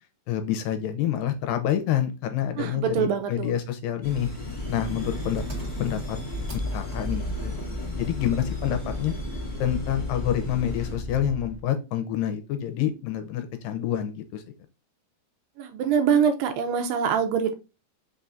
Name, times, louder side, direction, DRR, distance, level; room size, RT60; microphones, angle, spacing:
voice 1, 0.3-4.3 4.7-5.4 5.8-6.2 6.5-7.6 7.9-9.1 9.6-14.4, left 10 dB, 80° left, 8 dB, 2.3 m, -27 dB
voice 2, 2.6-3.5 15.6-17.5, right 7 dB, 80° right, 6 dB, 2.3 m, -24 dB
sound 1, 4.0-10.9, left 1 dB, 30° left, 0.7 m, -34 dB
Engine, 5.3-11.6, left 2 dB, 65° right, 0.6 m, -36 dB
5.5 x 3.6 x 2.6 m, 0.28 s
omnidirectional pair, 4.2 m